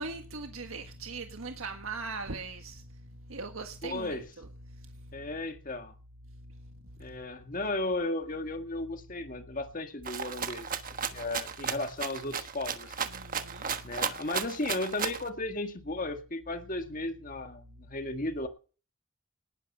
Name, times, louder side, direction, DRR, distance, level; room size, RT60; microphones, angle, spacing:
voice 1, 0.0-2.8 3.3-4.5 13.1-13.7, right 3 dB, 80° right, 1.6 m, -39 dB
voice 2, 3.8-4.3 5.1-5.9 7.0-13.1 13.8-18.5, left 2 dB, 40° left, 1.8 m, -35 dB
Rattle (instrument), 10.0-15.3, right 7 dB, 40° right, 1.3 m, -34 dB
19.5 x 10.5 x 5.4 m
head